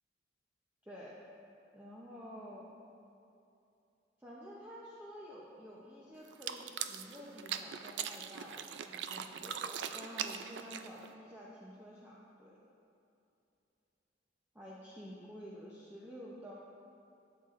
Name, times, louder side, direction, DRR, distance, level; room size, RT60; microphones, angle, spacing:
voice 1, 0.8-1.2 1.7-2.7 4.2-12.6 14.5-16.5, equal, 10° right, -7 dB, 0.7 m, -50 dB
sound 1, 6.3-11.1, right 8 dB, 70° right, 0.4 m, -41 dB
12.5 x 7.3 x 2.5 m, 2.7 s
head